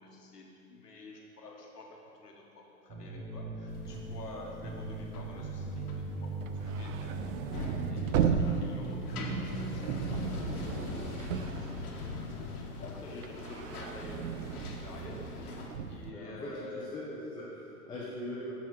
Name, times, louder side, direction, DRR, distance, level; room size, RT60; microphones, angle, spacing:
voice 1, 0.0-7.4 7.9-11.9 12.2-15.6 15.9-17.0, left 2 dB, 90° left, -1 dB, 1.4 m, -49 dB
sound 1, 2.9-10.7, right 4 dB, 25° right, 0.8 m, -39 dB
sound 2, 3.7-15.7, left 3 dB, 70° left, 1.3 m, -42 dB
sound 3, 6.3-12.4 12.8-16.1, right 7 dB, 60° right, 0.5 m, -35 dB
voice 2, 16.1-18.5, left 1 dB, 10° left, -7 dB, 0.8 m, -41 dB
7.1 x 4.2 x 6.0 m, 2.8 s
hypercardioid pair, 120°, 46 cm